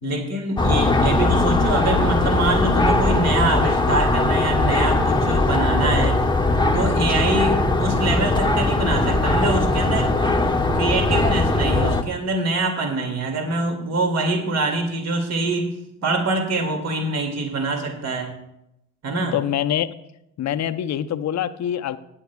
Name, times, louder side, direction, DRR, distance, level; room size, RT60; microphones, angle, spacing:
voice 1, 0.0-6.2 6.7-10.4 10.7-15.7 16.0-18.3 19.0-19.3, right 2 dB, 45° right, 2 dB, 2.5 m, -24 dB
sound 1, 0.6-12.0, left 2 dB, 15° left, 1.1 m, -20 dB
voice 2, 19.3-19.9 20.4-22.0, left 10 dB, 50° left, 10 dB, 0.8 m, -25 dB
17.0 x 9.6 x 2.4 m, 0.85 s
hypercardioid pair, 55°, 35 cm